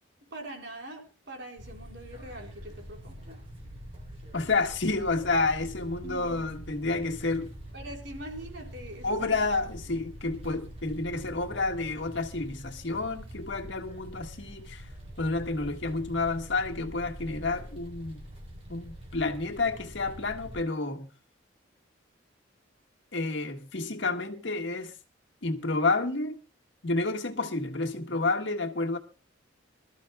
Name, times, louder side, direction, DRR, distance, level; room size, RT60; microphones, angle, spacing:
voice 1, 0.3-3.2 6.0-6.5 7.7-9.7, right 1 dB, 60° right, 4.0 m, -43 dB
sound 1, 1.6-20.6, equal, 30° right, 3.6 m, -45 dB
voice 2, 4.3-7.5 9.0-14.9 15.2-18.2 18.7-21.1 23.1-24.9 25.4-26.4 26.8-29.0, left 3 dB, 65° left, 1.6 m, -30 dB
25.5 x 13.5 x 2.3 m
head